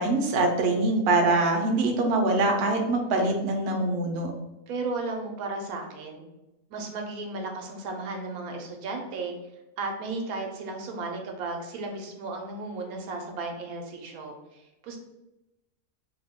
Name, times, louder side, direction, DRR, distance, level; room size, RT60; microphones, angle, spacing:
voice 1, 0.0-4.3, right 2 dB, 60° right, 2 dB, 0.6 m, -24 dB
voice 2, 4.7-6.2 6.7-9.4 9.8-15.0, right 3 dB, 85° right, 2 dB, 1.1 m, -34 dB
2.9 x 2.2 x 3.4 m, 0.95 s
omnidirectional pair, 1.5 m